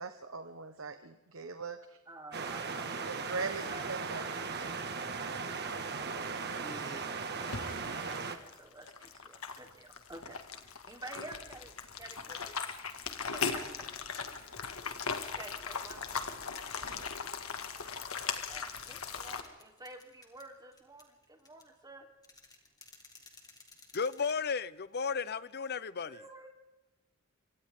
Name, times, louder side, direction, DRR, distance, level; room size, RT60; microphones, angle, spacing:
voice 1, 0.0-2.0 2.3-2.5 3.1-4.7, right 4 dB, 70° right, 1.3 m, -41 dB
voice 2, 2.1-3.1 3.7-3.9 6.2-12.6 12.8-12.9 13.3-14.0 15.2-17.2 18.5-22.1 26.1-26.5, right 2 dB, 20° right, 3.8 m, -50 dB
sound 1, 2.3-8.4, right 4 dB, 50° right, 1.9 m, -37 dB
sound 2, 7.4-19.4, left 5 dB, 90° left, 2.1 m, -39 dB
sound 3, 15.4-25.3, left 3 dB, 20° left, 3.5 m, -60 dB
voice 3, 23.9-26.2, left 5 dB, 50° left, 0.8 m, -34 dB
27.5 x 25.0 x 3.8 m
head